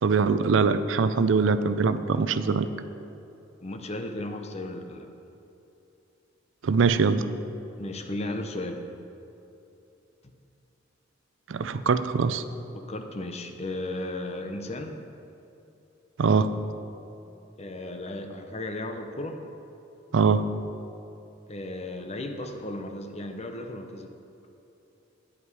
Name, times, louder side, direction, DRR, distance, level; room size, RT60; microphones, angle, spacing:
voice 1, 0.0-2.7 6.6-7.3 11.5-12.4 16.2-16.5 20.1-20.5, right 5 dB, 70° right, 12 dB, 0.4 m, -22 dB
voice 2, 3.6-5.1 7.8-8.8 12.9-15.0 17.6-19.4 21.5-24.1, left 1 dB, 35° left, 5 dB, 0.7 m, -35 dB
9.7 x 8.3 x 4.8 m, 2.8 s
head